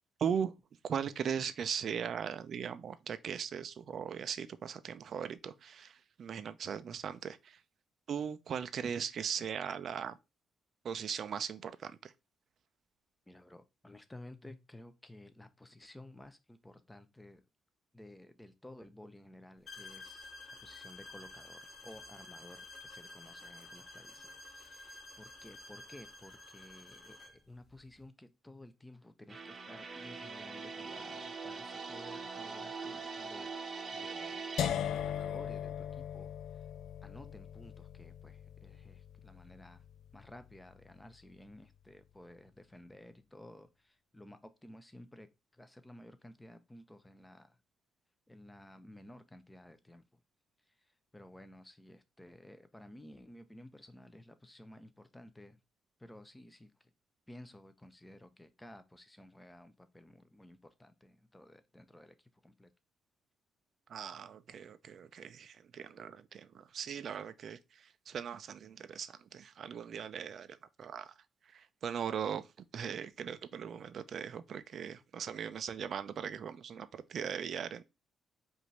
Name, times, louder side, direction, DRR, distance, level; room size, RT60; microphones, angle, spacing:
voice 1, 0.2-0.5 0.8-7.6 8.1-10.2 10.8-12.1 63.9-67.6 68.1-71.1 71.5-72.5 72.7-77.8, right 7 dB, 60° right, 0.5 m, -39 dB
voice 2, 13.3-17.4 17.9-33.6 33.9-34.4 34.8-36.3 37.0-39.8 40.1-47.6 48.3-50.0 51.1-55.6 56.0-56.9 57.3-62.7, left 1 dB, 10° left, 0.7 m, -54 dB
sound 1, 19.7-27.4, left 2 dB, 35° left, 2.4 m, -51 dB
sound 2, 29.3-34.7, right 4 dB, 35° right, 0.9 m, -42 dB
sound 3, 34.6-40.5, left 9 dB, 75° left, 0.3 m, -39 dB
5.0 x 2.7 x 3.2 m
cardioid pair, 90°, 0 cm